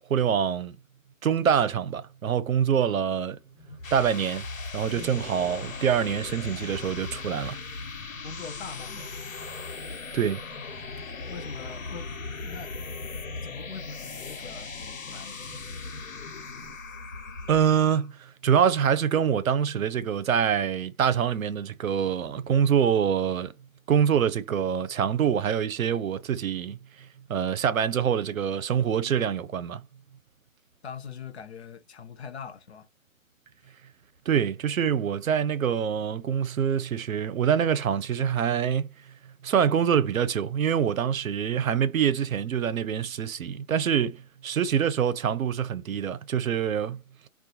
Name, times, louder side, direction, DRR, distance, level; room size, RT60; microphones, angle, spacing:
voice 1, 0.1-0.8 1.2-3.4 3.9-4.5 4.7-7.6 10.1-10.4 17.5-23.5 23.9-26.8 27.3-29.8 34.3-38.9 39.4-47.0, right 8 dB, 85° right, 0.6 m, -25 dB
sound 1, 3.6-18.1, left 3 dB, 80° left, 1.0 m, -38 dB
voice 2, 4.9-5.3 8.2-9.2 11.3-12.8 13.4-15.4 30.8-32.9, left 6 dB, 55° left, 0.6 m, -42 dB
2.4 x 2.2 x 2.8 m
hypercardioid pair, 155°, 40 cm